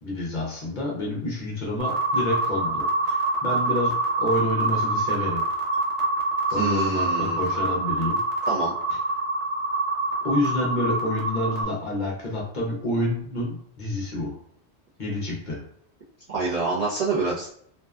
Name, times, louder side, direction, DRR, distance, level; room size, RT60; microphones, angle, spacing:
voice 1, 0.0-5.4 6.5-8.2 10.2-14.4 15.0-15.6, left 1 dB, 50° left, -3 dB, 0.7 m, -28 dB
sound 1, 1.8-11.6, right 2 dB, 80° right, 0.9 m, -26 dB
voice 2, 6.5-7.4 8.5-8.8 16.3-17.5, right 4 dB, 55° right, -8 dB, 0.4 m, -26 dB
2.6 x 2.2 x 2.2 m, 0.67 s
omnidirectional pair, 1.2 m